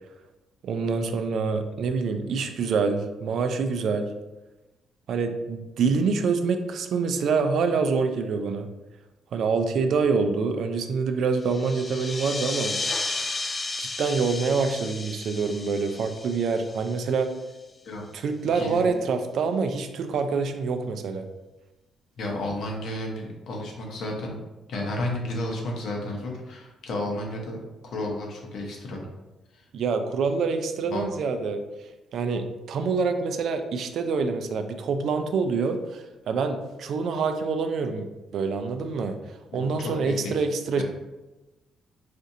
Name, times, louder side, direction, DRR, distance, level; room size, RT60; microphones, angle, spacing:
voice 1, 0.6-4.1 5.1-8.7 9.3-12.8 13.8-17.3 18.1-21.3 29.7-31.6 32.1-38.1 38.3-39.2 39.5-40.8, right 4 dB, 70° right, 7 dB, 0.4 m, -26 dB
sound 1, 11.4-17.6, left 3 dB, 25° left, 0.4 m, -33 dB
voice 2, 18.5-18.9 22.2-24.4 24.7-29.0 29.5-29.6 30.8-31.0 39.5-40.3 40.8-40.9, left 1 dB, 70° left, 0 dB, 0.8 m, -32 dB
4.2 x 2.4 x 2.7 m, 1.1 s
cardioid pair, 90°, 0 cm